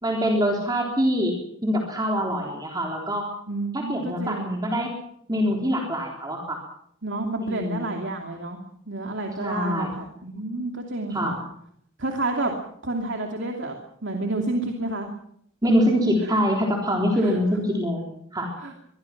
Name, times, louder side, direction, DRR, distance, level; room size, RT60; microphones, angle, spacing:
voice 1, 0.0-3.3 3.7-4.9 5.3-6.6 7.4-7.9 9.4-9.9 11.1-11.3 15.6-18.5, equal, 20° right, 0 dB, 3.7 m, -24 dB
voice 2, 3.5-4.7 7.0-8.6 8.9-11.4 12.0-12.5 12.8-13.8 14.0-15.1 16.2-16.5 17.2-17.4 18.6-18.7, right 2 dB, 65° right, 2 dB, 2.8 m, -30 dB
24.0 x 22.0 x 6.0 m, 0.68 s
head